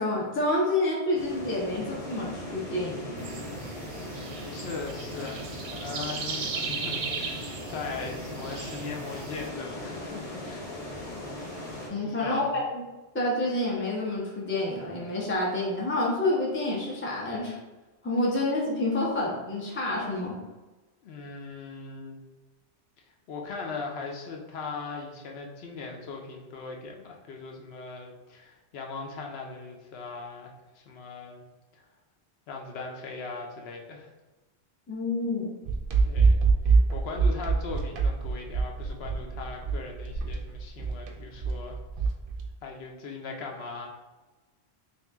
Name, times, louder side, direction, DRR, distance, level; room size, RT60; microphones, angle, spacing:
voice 1, 0.0-3.2 11.9-12.8 13.1-17.6 18.0-20.4 34.9-35.5, left 2 dB, 15° left, -4 dB, 0.4 m, -28 dB
sound 1, 1.1-11.9, left 1 dB, 35° left, 0.9 m, -39 dB
sound 2, 3.2-9.5, right 4 dB, 90° right, 0.9 m, -37 dB
voice 2, 4.5-10.7 12.0-12.5 21.0-22.2 23.3-31.4 31.7-31.8 32.5-34.1 36.1-36.4 36.6-41.8 42.6-43.9, left 4 dB, 75° left, 1 dB, 0.8 m, -39 dB
sound 3, 35.6-42.5, right 4 dB, 60° right, 0.7 m, -25 dB
3.0 x 2.6 x 3.4 m, 1.2 s
omnidirectional pair, 1.1 m